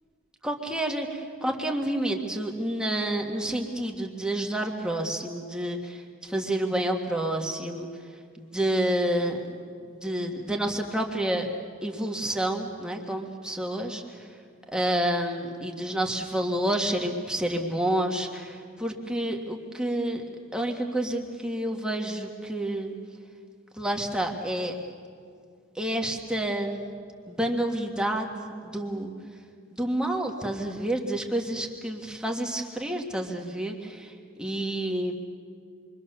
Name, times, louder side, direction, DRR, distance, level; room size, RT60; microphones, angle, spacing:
voice 1, 0.4-7.9 8.3-9.4 10.0-11.5 11.8-14.0 14.7-20.2 20.5-22.9 23.8-24.7 25.7-26.8 27.3-29.1 29.8-34.1 34.4-35.1, right 1 dB, 5° right, 1 dB, 1.7 m, -29 dB
27.5 x 23.5 x 6.8 m, 2.2 s
head